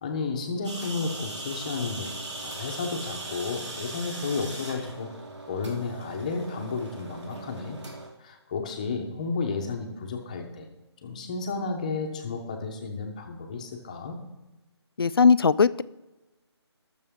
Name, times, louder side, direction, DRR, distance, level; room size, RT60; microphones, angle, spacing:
voice 1, 0.0-2.1 2.4-5.1 5.5-7.8 8.2-10.7 11.0-14.2, left 4 dB, 15° left, 3 dB, 0.9 m, -32 dB
sound 1, 0.6-8.1, right 2 dB, 85° right, 3.3 m, -39 dB
voice 2, 15.0-15.8, left 5 dB, 55° left, 17 dB, 0.4 m, -19 dB
19.5 x 6.8 x 3.7 m, 1.1 s
hypercardioid pair, 175°, 14 cm